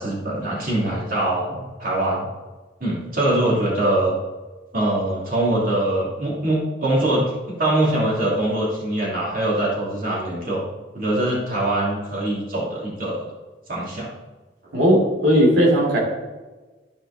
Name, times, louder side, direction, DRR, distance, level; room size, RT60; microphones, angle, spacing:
voice 1, 0.0-2.3 2.8-4.1 4.7-10.6 10.9-13.2 13.7-14.1, right 1 dB, 50° right, -5 dB, 2.8 m, -23 dB
voice 2, 14.7-16.0, equal, 85° right, -3 dB, 2.8 m, -17 dB
13.0 x 5.0 x 4.2 m, 1.2 s
head